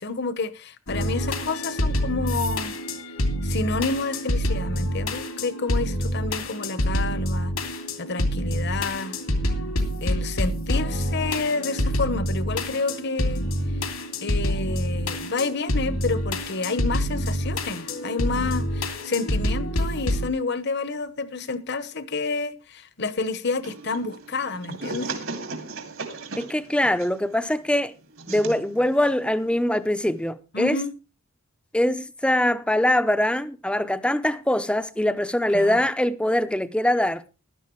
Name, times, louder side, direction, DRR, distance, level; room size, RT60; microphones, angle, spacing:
voice 1, 0.0-2.8 3.4-9.2 10.0-13.5 14.2-25.2 30.5-30.9 35.5-35.8, left 3 dB, 50° left, 1.1 m, -29 dB
sound 1, 0.9-20.3, equal, 85° left, 2.6 m, -27 dB
sound 2, 23.6-30.3, right 3 dB, 65° right, 2.6 m, -38 dB
voice 2, 26.4-27.9 28.3-30.8 31.7-37.2, left 1 dB, 5° left, 0.6 m, -23 dB
15.5 x 11.5 x 3.1 m
head